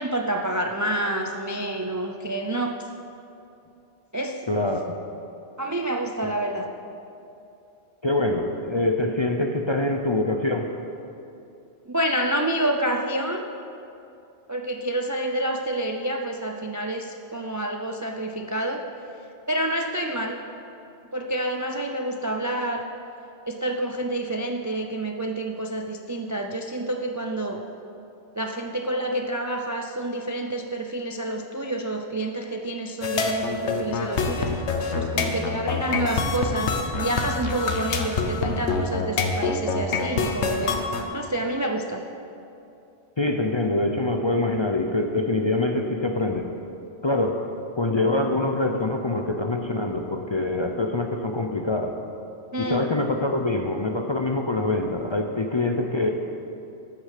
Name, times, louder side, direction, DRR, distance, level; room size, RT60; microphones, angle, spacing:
voice 1, 0.0-2.8 4.1-4.7 5.6-6.7 11.9-13.5 14.5-18.8 19.5-20.4 21.1-22.9 23.5-27.6 28.4-34.6 34.9-40.8 41.1-42.0 52.5-52.9, right 1 dB, 30° right, 4 dB, 0.3 m, -28 dB
voice 2, 4.5-4.8 6.2-6.3 8.0-10.7 43.2-46.5 47.0-47.4 47.8-52.0 52.6-56.1, left 2 dB, 35° left, 3 dB, 0.5 m, -24 dB
sound 1, 33.0-41.0, left 4 dB, 75° left, 1.2 m, -26 dB
13.0 x 6.4 x 6.6 m, 2.7 s
omnidirectional pair, 1.2 m